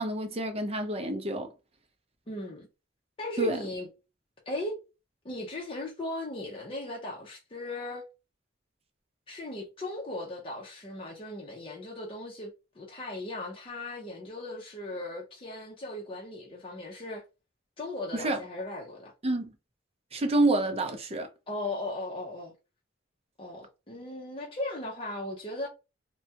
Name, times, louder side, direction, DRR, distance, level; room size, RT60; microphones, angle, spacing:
voice 1, 0.0-1.5 3.4-3.6 18.1-18.4 19.2-19.5 20.1-21.3, right 2 dB, 30° right, 0.6 m, -28 dB
voice 2, 2.3-2.7 3.2-3.9 4.5-4.8 5.2-8.1 9.3-17.2 17.8-19.1 21.5-22.5 23.4-25.7, left 2 dB, 30° left, 0.7 m, -37 dB
3.4 x 2.2 x 2.8 m
head